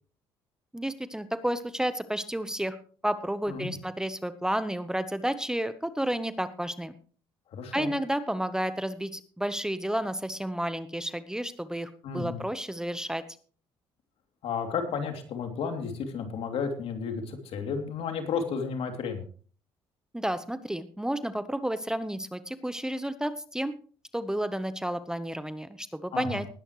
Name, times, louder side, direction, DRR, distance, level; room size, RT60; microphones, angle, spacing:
voice 1, 0.7-2.8 3.0-6.9 7.7-13.2 20.1-23.7 24.1-26.5, right 1 dB, 5° right, 12 dB, 1.0 m, -31 dB
voice 2, 7.5-7.9 12.0-12.4 14.4-19.2 26.1-26.4, left 5 dB, 70° left, 5 dB, 2.9 m, -32 dB
19.5 x 9.9 x 3.2 m, 0.42 s
supercardioid pair, 80°, 10 cm